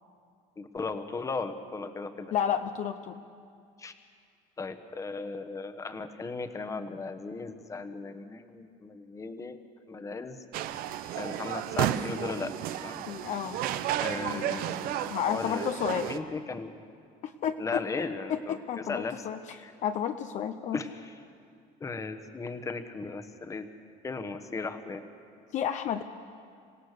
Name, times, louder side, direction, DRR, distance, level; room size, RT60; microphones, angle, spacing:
voice 1, 0.6-2.3 3.8-3.9 4.6-9.6 9.9-10.4 11.2-12.5 12.8-13.1 14.0-15.6 16.0-16.7 17.6-19.2 19.6-19.7 20.7-21.1 21.8-23.7 24.0-25.0, left 4 dB, 20° left, 9 dB, 1.2 m, -36 dB
voice 2, 2.3-3.2 13.1-13.6 14.2-14.6 15.1-16.1 17.2-17.8 18.3-19.4 19.8-20.8 25.5-26.0, left 9 dB, 50° left, 8 dB, 0.8 m, -31 dB
sound 1, 10.5-16.2, right 12 dB, 70° right, 0.9 m, -33 dB
26.5 x 16.0 x 6.6 m, 2.3 s
cardioid pair, 125°, 15 cm